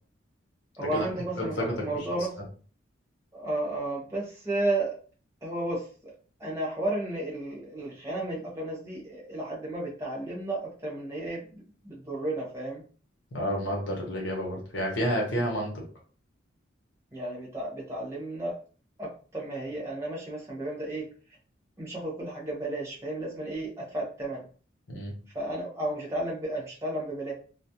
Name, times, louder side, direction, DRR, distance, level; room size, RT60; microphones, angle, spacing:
voice 1, 0.8-2.3 3.3-4.9 5.4-6.1 6.4-12.8 17.1-18.6 19.0-21.1 21.8-24.4 25.3-27.3, right 1 dB, 15° right, -5 dB, 0.9 m, -33 dB
voice 2, 1.4-2.1 13.3-15.8 24.9-25.1, equal, 75° left, -1 dB, 0.9 m, -30 dB
2.4 x 2.0 x 2.7 m, 0.40 s
head